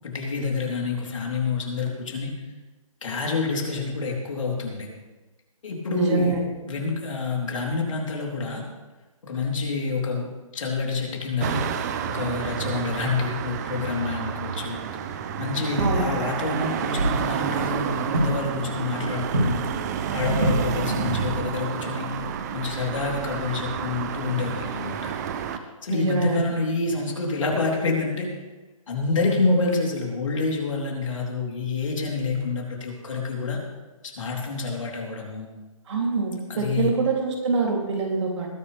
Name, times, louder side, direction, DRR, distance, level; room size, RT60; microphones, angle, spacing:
voice 1, 0.0-2.3 3.0-4.9 5.6-6.4 6.6-8.6 9.2-10.3 10.5-11.6 12.1-14.8 15.4-19.6 20.1-22.1 22.5-25.1 25.8-28.3 28.9-33.6 34.2-35.5 36.5-36.9, left 4 dB, 65° left, -1 dB, 3.8 m, -27 dB
voice 2, 5.9-6.4 15.8-16.1 25.9-26.4 35.9-38.5, right 4 dB, 55° right, -1 dB, 3.4 m, -25 dB
sound 1, 11.4-25.6, right 8 dB, 30° right, 0.8 m, -30 dB
sound 2, 15.8-16.5 17.0-17.7 18.1-18.6 19.3-19.9 20.4-21.0 22.2-22.3 24.4-24.5, right 1 dB, 85° right, 3.6 m, -26 dB
20.5 x 9.9 x 3.5 m, 1.2 s
figure-of-eight pair, 145°, 18 cm